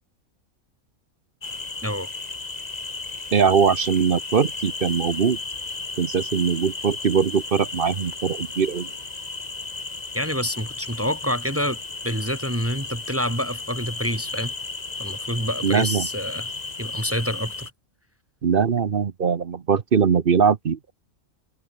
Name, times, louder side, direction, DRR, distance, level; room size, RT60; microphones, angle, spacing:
sound 1, 1.4-17.7, left 3 dB, 30° left, 1.7 m, -34 dB
voice 1, 3.3-5.4 6.0-8.9 15.6-16.1 18.4-20.9, right 6 dB, 45° right, 1.0 m, -21 dB
voice 2, 10.1-11.8 12.0-14.5 15.0-16.5 16.8-17.7, equal, 10° right, 3.4 m, -27 dB
omnidirectional pair, 1.4 m